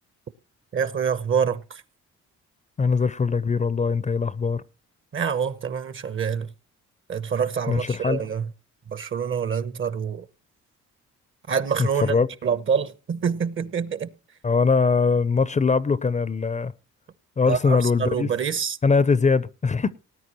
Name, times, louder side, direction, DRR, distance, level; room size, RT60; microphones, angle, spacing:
voice 1, 0.7-1.8 5.1-6.5 7.1-8.4 8.9-10.3 11.5-12.1 12.4-14.1 17.5-18.8, right 7 dB, 40° right, 1.0 m, -26 dB
voice 2, 2.8-4.6 7.7-8.3 11.8-12.3 14.4-16.7 17.4-18.3 18.8-19.9, left 4 dB, 25° left, 0.6 m, -22 dB
19.0 x 9.4 x 3.0 m
cardioid pair, 90°, 30 cm